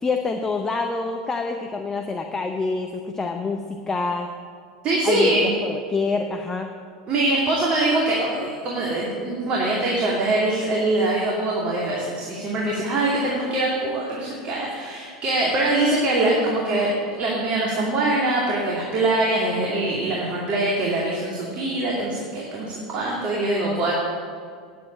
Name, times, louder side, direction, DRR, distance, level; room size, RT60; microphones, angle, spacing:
voice 1, 0.0-4.3 5.0-6.7 12.6-13.0 23.3-23.9, left 4 dB, 20° left, 4 dB, 0.8 m, -27 dB
voice 2, 4.8-5.5 7.1-23.9, right 2 dB, 35° right, -4 dB, 2.5 m, -23 dB
9.7 x 8.5 x 8.8 m, 2.1 s
figure-of-eight pair, 80°, 3 cm